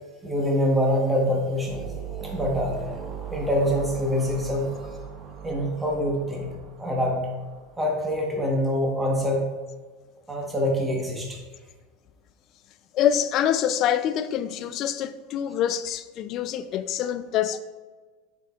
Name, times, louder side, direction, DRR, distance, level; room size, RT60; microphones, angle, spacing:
voice 1, 0.2-1.8 2.3-2.8 3.3-4.7 5.4-6.5 6.8-7.3 7.8-9.5 10.3-11.4, equal, 5° right, 1.1 m, -25 dB
sound 1, 1.7-8.1, right 8 dB, 20° right, 0.8 m, -39 dB
voice 2, 12.9-17.6, left 10 dB, 40° left, 0.3 m, -25 dB
6.8 x 5.9 x 2.4 m
supercardioid pair, 155°, 0 cm